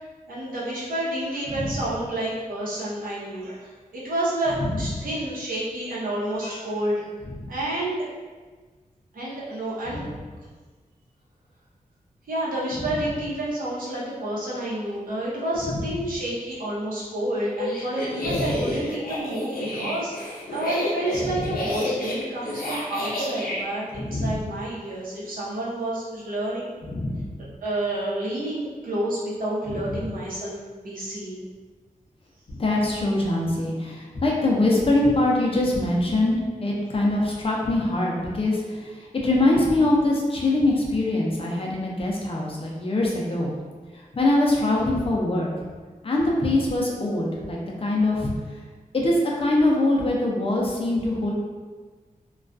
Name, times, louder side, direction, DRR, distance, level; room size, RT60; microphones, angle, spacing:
voice 1, 0.3-7.0 7.5-8.0 9.1-10.1 12.3-26.7 27.6-31.5, right 1 dB, 75° right, -7 dB, 0.7 m, -29 dB
sound 1, 17.4-23.6, left 1 dB, 90° left, 0.5 m, -30 dB
voice 2, 18.2-18.6 21.2-21.5 23.9-24.4 26.8-27.4 29.7-30.1 32.5-43.5 43.9-45.5 46.0-48.3 48.9-51.3, left 2 dB, 40° left, -3 dB, 0.5 m, -23 dB
2.3 x 2.2 x 2.4 m, 1.4 s
wide cardioid pair, 85°, 15 cm